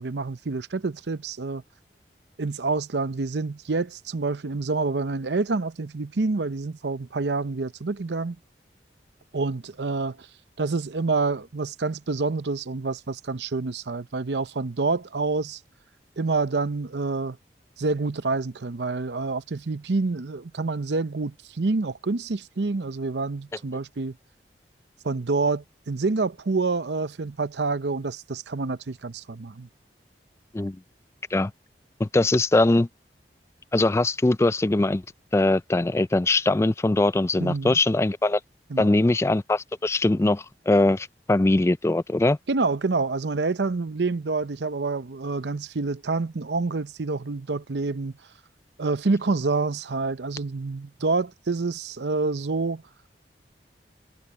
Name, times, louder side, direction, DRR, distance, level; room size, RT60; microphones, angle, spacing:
voice 1, 0.0-1.6 2.4-8.4 9.3-10.2 10.6-15.6 16.2-17.4 17.8-24.1 25.0-29.7 37.4-37.8 38.7-38.9 42.5-48.1 48.8-52.8, right 3 dB, 80° right, 0.7 m, -27 dB
voice 2, 32.0-32.9 33.7-35.0 35.3-38.4 38.8-42.4, left 2 dB, 15° left, 0.3 m, -21 dB
head